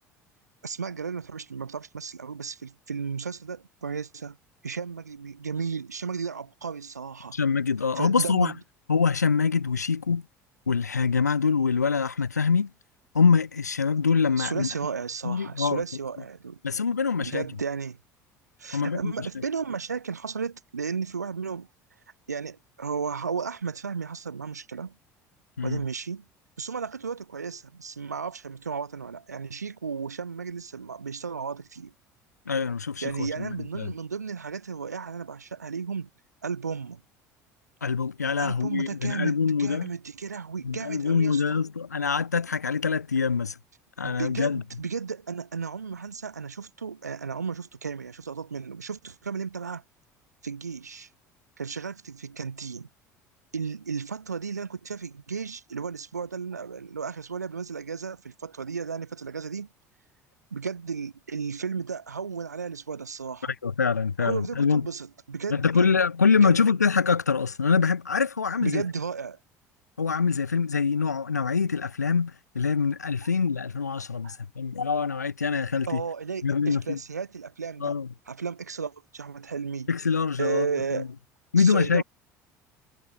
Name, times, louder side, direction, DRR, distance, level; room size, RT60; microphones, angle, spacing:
voice 1, 0.6-4.4 4.6-7.4 8.0-8.5 14.4-16.6 17.2-18.0 18.6-21.7 22.3-25.0 25.6-26.2 26.6-31.9 33.0-36.1 36.4-37.0 38.4-41.4 44.0-49.8 50.4-51.1 51.6-52.9 53.5-59.7 60.5-63.5 64.2-66.0 66.4-66.7 68.6-69.4 74.2-74.4 75.9-78.0 78.3-79.9 80.4-81.1 81.6-82.0, right 5 dB, 85° right, 5.5 m, -34 dB
voice 2, 7.3-8.5 8.9-10.2 10.7-12.7 13.1-14.7 15.2-15.8 16.6-17.4 18.7-19.3 25.6-25.8 32.5-33.9 37.8-39.9 40.6-43.6 44.0-44.6 63.6-64.9 65.5-68.8 70.0-76.0 76.4-77.0 77.8-78.1 79.9-81.1 81.5-82.0, left 5 dB, 85° left, 3.9 m, -24 dB
figure-of-eight pair, 60°, 9 cm